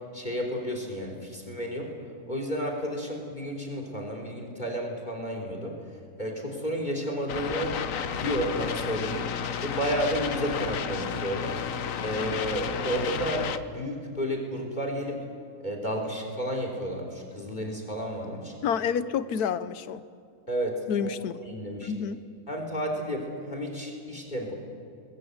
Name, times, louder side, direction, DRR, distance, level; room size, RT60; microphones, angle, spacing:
voice 1, 0.1-1.9 2.3-5.8 6.2-7.8 8.1-9.3 9.6-11.6 12.0-15.2 15.6-18.5 20.5-21.1 21.5-21.9 22.5-24.6, equal, 30° left, 2 dB, 3.6 m, -31 dB
sound 1, 7.3-13.6, left 7 dB, 60° left, 1.3 m, -32 dB
voice 2, 18.6-20.0 20.9-21.4 21.8-22.2, left 7 dB, 75° left, 13 dB, 1.4 m, -29 dB
29.0 x 21.5 x 7.9 m, 2.5 s
omnidirectional pair, 1.7 m